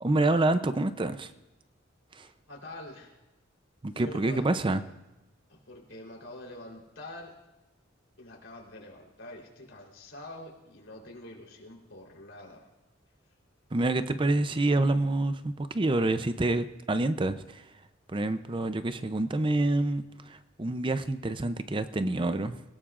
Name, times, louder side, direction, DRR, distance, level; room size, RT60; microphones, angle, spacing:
voice 1, 0.0-1.3 2.1-2.3 3.8-4.8 13.7-17.7 18.1-22.6, right 2 dB, 25° right, 10 dB, 0.5 m, -27 dB
voice 2, 2.5-3.1 3.9-4.6 5.5-7.4 8.2-12.7, left 1 dB, 80° left, -1 dB, 3.7 m, -45 dB
28.0 x 17.5 x 2.5 m, 1.0 s
head